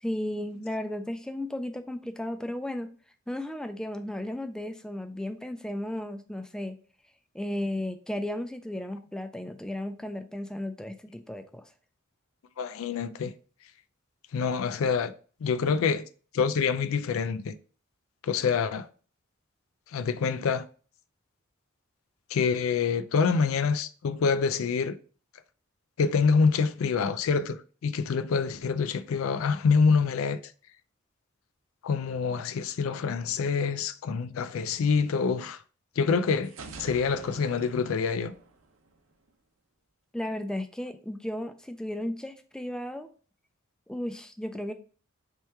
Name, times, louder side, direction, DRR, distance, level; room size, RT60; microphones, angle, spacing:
voice 1, 0.0-2.9 3.3-6.8 7.3-11.7 40.1-43.1 43.9-44.7, left 1 dB, 5° left, 0.3 m, -34 dB
voice 2, 12.6-13.3 14.3-15.1 15.4-16.0 16.3-17.5 18.2-18.9 19.9-20.6 22.3-25.0 26.0-27.6 27.8-30.5 31.8-35.6 36.0-36.5 36.8-38.3, left 5 dB, 85° left, 0.4 m, -26 dB
sound 1, 36.4-39.3, right 3 dB, 80° right, 0.7 m, -46 dB
3.3 x 3.0 x 4.4 m
head